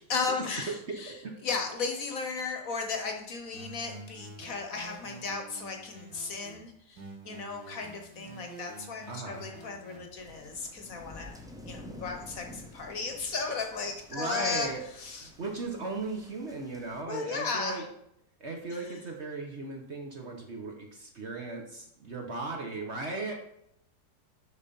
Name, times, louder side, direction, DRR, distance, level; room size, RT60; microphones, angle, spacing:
voice 1, 0.1-1.1 1.4-11.3 11.6-14.7 15.0-15.3 17.1-17.8 18.7-18.8, left 4 dB, 55° left, 4 dB, 1.3 m, -35 dB
sound 1, 3.5-6.6 7.0-10.0, right 2 dB, 90° right, 2.3 m, -48 dB
voice 2, 9.1-9.5 14.1-14.8 15.2-17.8 18.4-23.3, right 3 dB, 45° right, 1 dB, 1.1 m, -37 dB
sound 2, 10.2-17.0, left 1 dB, 5° right, 0.4 m, -50 dB
6.5 x 5.6 x 5.3 m, 0.77 s
omnidirectional pair, 1.9 m